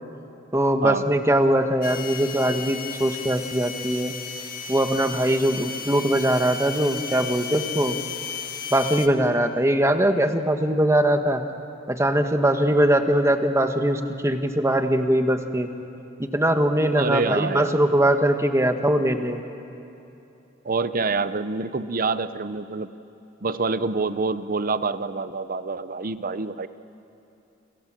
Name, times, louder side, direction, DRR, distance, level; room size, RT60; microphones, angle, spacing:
voice 1, 0.5-4.1 4.7-8.0 8.7-11.4 11.9-15.7 16.2-19.4, right 1 dB, 15° right, 7 dB, 1.4 m, -21 dB
sound 1, 1.8-9.1, left 7 dB, 45° left, 1.8 m, -34 dB
voice 2, 17.0-17.8 20.6-22.9 23.4-26.7, right 4 dB, 45° right, 13 dB, 0.9 m, -26 dB
30.0 x 26.0 x 7.6 m, 2.8 s
head